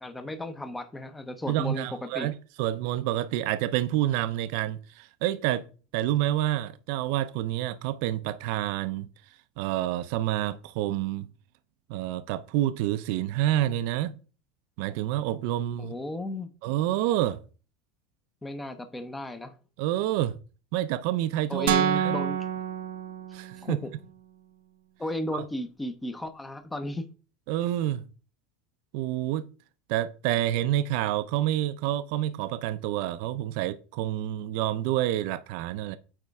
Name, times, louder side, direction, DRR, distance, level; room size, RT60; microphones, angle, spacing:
voice 1, 0.0-1.9 2.1-2.3 15.8-16.5 18.4-19.5 21.5-22.4 23.6-23.9 25.0-27.0, left 1 dB, 10° left, 0.7 m, -34 dB
voice 2, 1.5-5.6 5.9-9.1 9.6-11.3 11.9-14.1 14.8-16.0 16.6-17.4 19.8-20.4 20.7-22.2 23.3-23.8 25.3-25.5 27.5-28.0 28.9-29.5 29.9-36.0, right 13 dB, 60° right, 0.6 m, -28 dB
sound 1, 21.7-23.8, right 9 dB, 90° right, 0.9 m, -27 dB
9.1 x 4.3 x 3.5 m
supercardioid pair, 160°, 0 cm